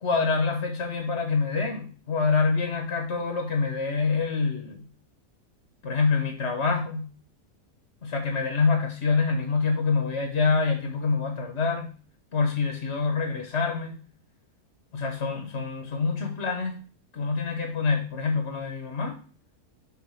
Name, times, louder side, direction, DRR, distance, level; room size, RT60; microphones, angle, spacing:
voice 1, 0.0-4.9 5.8-7.1 8.0-11.9 12.3-14.0 14.9-16.8 17.1-19.2, left 4 dB, 50° left, 3 dB, 1.3 m, -26 dB
6.2 x 4.0 x 5.7 m, 0.39 s
omnidirectional pair, 1.7 m